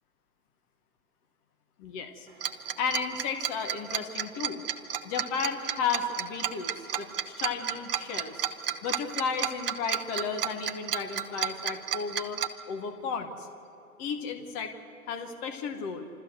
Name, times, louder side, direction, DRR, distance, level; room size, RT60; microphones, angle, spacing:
voice 1, 1.8-2.3 2.8-4.6 5.0-8.4 8.8-12.4 12.7-13.5 14.0-14.8 15.1-16.1, left 5 dB, 20° left, 7 dB, 1.0 m, -33 dB
Tick-tock, 2.4-12.5, right 10 dB, 40° right, 0.9 m, -31 dB
28.0 x 13.5 x 8.0 m, 2.6 s
hypercardioid pair, 140°, 44 cm